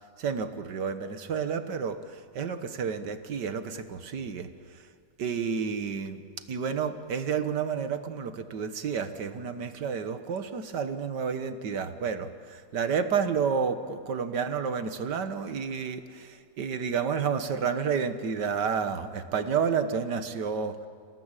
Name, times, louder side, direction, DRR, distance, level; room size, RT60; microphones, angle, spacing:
voice 1, 0.2-4.8 5.2-6.2 6.5-20.8, right 6 dB, 75° right, 9 dB, 1.9 m, -30 dB
28.5 x 18.0 x 9.0 m, 2.3 s
omnidirectional pair, 1.8 m